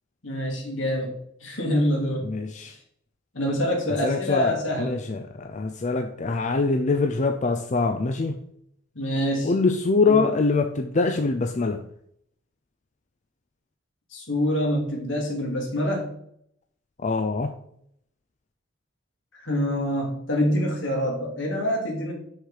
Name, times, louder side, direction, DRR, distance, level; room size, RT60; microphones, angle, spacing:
voice 1, 0.2-1.1 1.4-2.3 3.3-5.0 8.9-9.5 10.1-10.2 14.1-16.1 19.4-22.1, equal, 75° left, 0 dB, 2.6 m, -26 dB
voice 2, 2.2-2.8 3.9-8.4 9.4-11.8 17.0-17.5, left 3 dB, 40° left, 6 dB, 0.5 m, -24 dB
6.5 x 6.4 x 4.9 m, 0.70 s
head